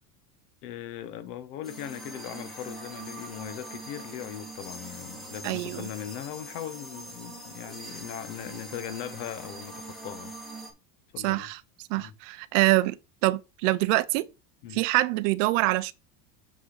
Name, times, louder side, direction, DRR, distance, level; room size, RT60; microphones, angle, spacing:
voice 1, 0.6-10.3 11.1-11.5 11.9-12.2 14.6-14.8, left 11 dB, 70° left, 1.1 m, -39 dB
sound 1, 1.6-10.7, right 1 dB, ahead, 1.3 m, -43 dB
voice 2, 5.4-5.8 11.2-11.6 11.9-14.3 14.7-15.9, right 19 dB, 55° right, 0.5 m, -25 dB
6.5 x 5.8 x 3.9 m
cardioid pair, 165°, 47 cm